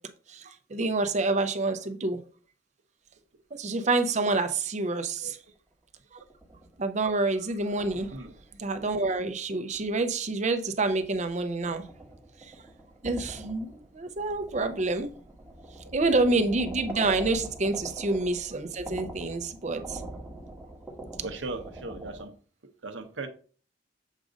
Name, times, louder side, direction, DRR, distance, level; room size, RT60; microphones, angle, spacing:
voice 1, 0.3-2.2 3.5-5.4 6.1-6.2 6.8-8.2 8.6-11.9 12.4-12.5 13.0-15.1 15.9-20.0, right 3 dB, 40° right, 0.6 m, -28 dB
sound 1, 6.2-6.9 7.4-10.1 10.5-22.2, right 1 dB, 10° right, 1.0 m, -44 dB
voice 2, 21.2-22.3 22.8-23.3, right 3 dB, 75° right, 0.8 m, -37 dB
7.3 x 2.5 x 5.0 m
head